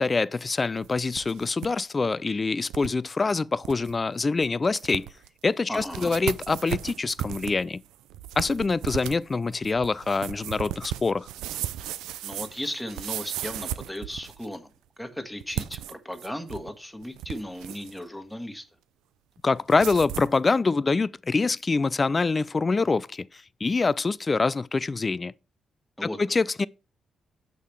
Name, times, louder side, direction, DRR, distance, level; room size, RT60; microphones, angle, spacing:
voice 1, 0.0-5.1 5.4-7.8 8.4-11.3 19.4-25.3 26.0-26.7, left 4 dB, 35° left, 0.4 m, -25 dB
sound 1, 0.8-1.7 2.0-2.1 2.7-2.9 3.3-3.4 3.6-3.9 4.4-4.5 4.8-5.3 5.7-14.5 15.4-16.7 17.0-18.0 19.7-20.4, right 12 dB, 85° right, 0.4 m, -35 dB
voice 2, 5.7-6.1 12.2-14.7 15.0-18.6 26.0-26.2, left 1 dB, 5° left, 1.4 m, -36 dB
6.4 x 5.4 x 4.5 m
supercardioid pair, 55°, 0 cm